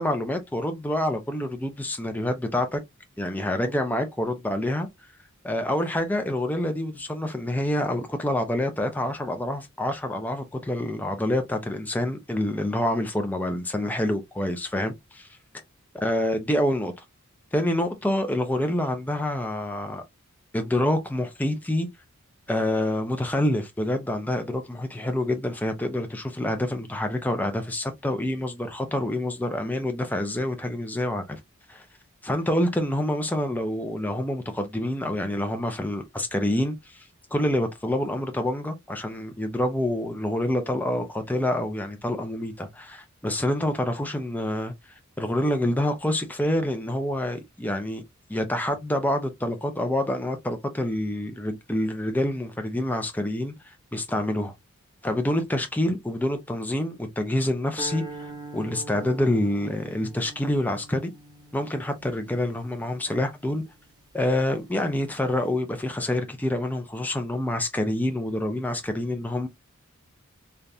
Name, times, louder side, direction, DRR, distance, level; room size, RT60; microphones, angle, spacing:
voice 1, 0.0-2.8 3.2-4.9 5.4-15.3 16.0-17.0 17.5-20.0 20.5-21.9 22.5-31.4 31.7-31.8 32.2-44.7 45.2-48.0 48.3-54.5 55.0-61.1 61.5-63.6 64.1-69.5, left 1 dB, 10° left, 0.5 m, -27 dB
sound 1, 57.8-64.1, right 2 dB, 15° right, 0.9 m, -43 dB
3.3 x 2.5 x 2.6 m
head